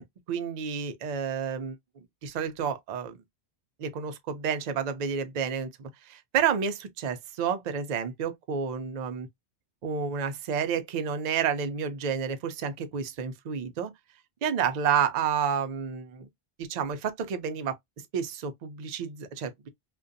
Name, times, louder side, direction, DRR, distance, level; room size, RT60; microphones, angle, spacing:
voice 1, 0.0-1.8 2.2-3.2 3.8-9.3 9.8-13.9 14.4-16.3 16.6-17.8 18.1-19.7, right 7 dB, 60° right, 0.4 m, -30 dB
2.5 x 2.2 x 2.4 m
omnidirectional pair, 1.1 m